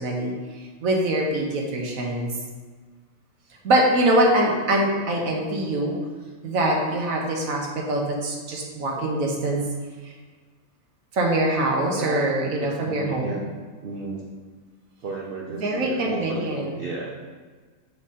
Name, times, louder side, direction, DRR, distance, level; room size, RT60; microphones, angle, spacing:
voice 1, 0.0-2.3 3.6-5.9 6.4-9.7 10.0-10.1 11.1-13.4 15.6-16.7, right 1 dB, 75° right, -1 dB, 1.3 m, -24 dB
voice 2, 11.9-13.5 13.8-14.3 15.0-17.1, right 3 dB, 55° right, -2 dB, 0.6 m, -34 dB
7.3 x 3.6 x 4.1 m, 1.5 s
omnidirectional pair, 1.4 m